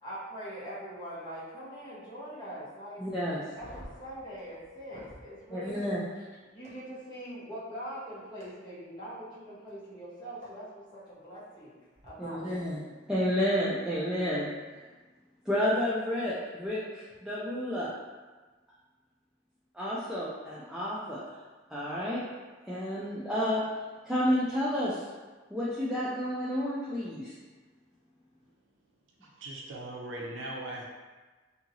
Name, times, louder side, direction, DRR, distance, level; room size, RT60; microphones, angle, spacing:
voice 1, 0.0-3.2 3.6-6.3 6.5-11.7 12.0-12.7, equal, 25° left, -9 dB, 1.0 m, -43 dB
voice 2, 3.0-3.4 5.5-6.0 12.2-12.8 13.1-14.5 15.5-17.9 19.7-21.3 21.7-22.2 22.7-23.6 24.1-25.1 25.5-27.3, equal, 5° right, -9 dB, 0.4 m, -30 dB
sound 1, 3.5-5.3 6.6-6.7 8.4-8.5 10.4-10.5 11.9-12.1, equal, 35° right, 0.8 m, -49 dB
voice 3, 29.2-30.9, right 1 dB, 80° right, -2 dB, 0.6 m, -39 dB
2.8 x 2.7 x 2.6 m, 1.3 s
head